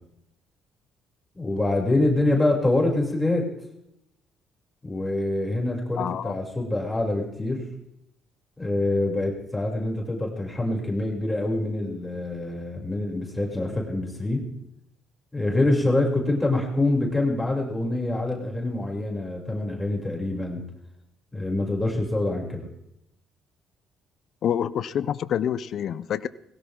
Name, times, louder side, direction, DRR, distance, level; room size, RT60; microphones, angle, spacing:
voice 1, 1.3-3.5 4.8-7.7 8.6-14.4 15.3-20.6 21.3-22.7, left 2 dB, 15° left, -1 dB, 7.3 m, -25 dB
voice 2, 6.0-6.4 24.4-26.3, left 9 dB, 60° left, 16 dB, 0.7 m, -27 dB
21.0 x 17.0 x 3.8 m, 0.80 s
hypercardioid pair, 50°, 0 cm